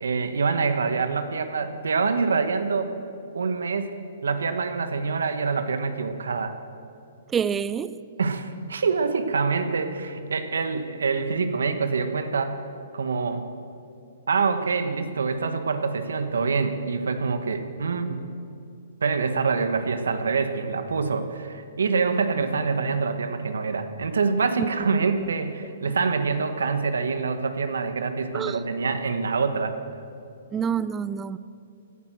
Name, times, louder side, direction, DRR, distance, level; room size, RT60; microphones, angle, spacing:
voice 1, 0.0-2.9 3.3-3.9 4.2-6.6 8.2-12.6 12.9-13.4 14.3-18.2 19.0-29.7, right 4 dB, 85° right, 9 dB, 1.1 m, -25 dB
voice 2, 7.3-7.9 24.6-25.3 28.3-28.6 30.5-31.4, right 7 dB, 15° right, 16 dB, 0.4 m, -28 dB
17.0 x 9.1 x 7.5 m, 2.5 s
hypercardioid pair, 140°, 0 cm